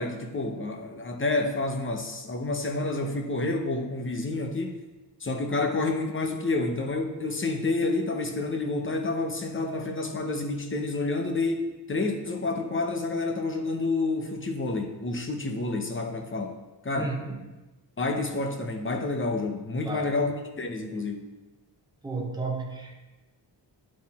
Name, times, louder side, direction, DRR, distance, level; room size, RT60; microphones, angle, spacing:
voice 1, 0.0-4.8 5.2-17.1 18.0-21.3, left 2 dB, 30° left, 3 dB, 0.8 m, -29 dB
voice 2, 16.9-17.4 19.8-20.1 22.0-23.0, right 3 dB, 10° right, 0 dB, 1.1 m, -32 dB
10.5 x 4.1 x 4.2 m, 1.1 s
wide cardioid pair, 130°, 44 cm